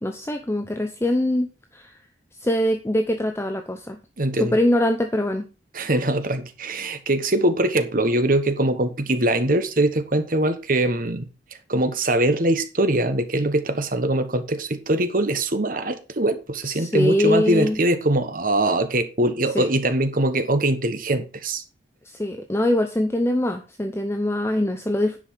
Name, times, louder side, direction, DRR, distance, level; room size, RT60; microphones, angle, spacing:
voice 1, 0.0-1.9 2.4-4.0 4.3-5.4 16.6-17.8 19.5-19.7 22.0-25.2, left 1 dB, 15° left, 0.7 m, -23 dB
voice 2, 4.2-4.6 5.7-11.3 11.7-21.6, right 1 dB, 50° right, 1.3 m, -22 dB
10.0 x 5.5 x 5.7 m
head